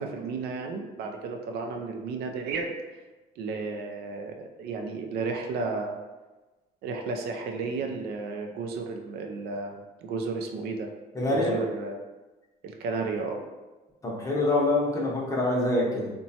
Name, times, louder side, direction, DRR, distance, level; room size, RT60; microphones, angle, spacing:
voice 1, 0.0-2.8 3.4-6.0 6.8-10.9 11.3-12.0 12.6-13.4, right 4 dB, 75° right, 3 dB, 0.4 m, -33 dB
voice 2, 11.1-11.5 14.0-16.1, left 2 dB, 20° left, -3 dB, 0.7 m, -25 dB
2.9 x 2.1 x 2.7 m, 1.2 s
cardioid pair, 110°, 17 cm